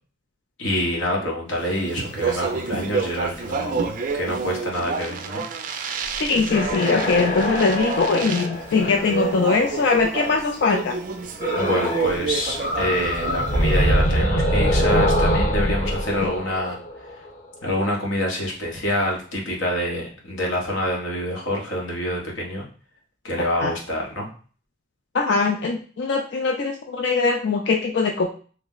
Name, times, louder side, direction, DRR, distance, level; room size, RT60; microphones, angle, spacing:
voice 1, 0.6-3.8 4.1-5.4 11.5-16.8 17.6-22.7 23.2-24.3, left 1 dB, 80° left, -2 dB, 1.1 m, -26 dB
Speech, 1.7-14.0, right 5 dB, 45° right, 0.3 m, -29 dB
sound 1, 6.1-10.3 11.4-12.2 12.4-17.3, equal, 35° left, 0.9 m, -24 dB
voice 2, 6.2-10.9 16.2-16.3 23.6-23.7 25.1-28.3, left 4 dB, 65° left, 3 dB, 0.4 m, -21 dB
3.2 x 2.0 x 3.7 m, 0.41 s
head